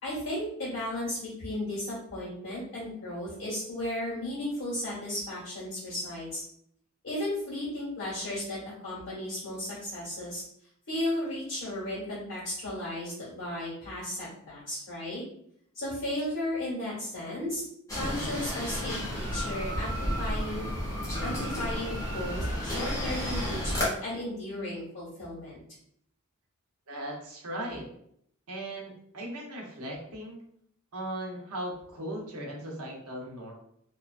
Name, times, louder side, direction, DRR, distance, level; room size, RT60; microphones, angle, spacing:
voice 1, 0.0-6.4 7.0-10.4 10.9-15.2 15.7-17.6 17.9-20.7 21.2-25.6, left 1 dB, 60° left, -8 dB, 1.5 m, -35 dB
sound 1, 17.9-23.8, equal, 15° left, 0.8 m, -32 dB
voice 2, 26.9-27.9 28.5-30.4 30.9-33.5, right 1 dB, 90° right, -1 dB, 0.8 m, -38 dB
2.9 x 2.2 x 2.4 m, 0.71 s
head